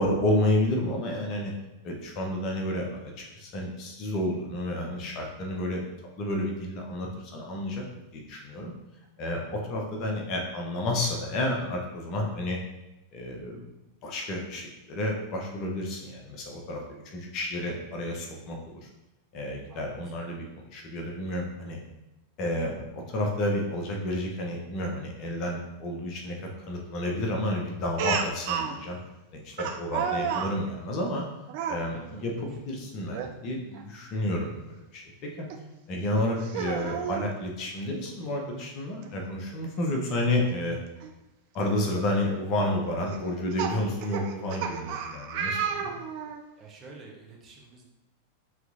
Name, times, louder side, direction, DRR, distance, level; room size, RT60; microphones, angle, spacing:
voice 1, 0.0-1.5 1.8-5.8 6.2-7.8 8.1-8.7 9.2-12.6 13.1-13.7 14.0-16.8 17.1-18.8 19.3-20.5 20.7-21.8 22.4-29.0 29.3-31.2 31.7-35.0 35.4-35.5 35.9-40.8 41.5-45.9, left 1 dB, 40° left, 1 dB, 0.8 m, -30 dB
Speech, 28.0-28.7 29.6-30.5 31.5-31.8 33.1-33.3 33.7-33.8 35.5-35.6 36.4-37.3 38.6-38.7 39.0-39.1 41.0-41.1 41.7-42.0 43.1-46.4, right 7 dB, 45° right, 0.4 m, -31 dB
voice 2, 31.9-32.8 46.6-47.8, right 4 dB, 25° right, -1 dB, 0.9 m, -49 dB
5.6 x 3.0 x 2.6 m, 0.99 s
figure-of-eight pair, 90°, 0 cm